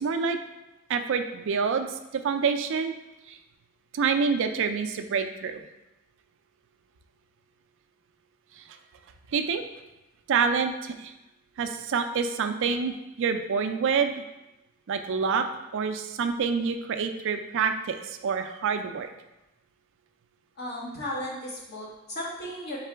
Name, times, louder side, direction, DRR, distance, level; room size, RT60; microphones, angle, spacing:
voice 1, 0.0-0.4 0.9-2.9 3.3-3.4 3.9-5.6 8.6-8.7 9.3-9.6 10.3-11.1 11.6-14.1 14.9-15.5 15.7-19.1, right 5 dB, 60° right, 7 dB, 0.4 m, -27 dB
voice 2, 20.6-22.8, left 1 dB, 50° left, -5 dB, 1.3 m, -35 dB
4.0 x 3.7 x 3.4 m, 0.98 s
head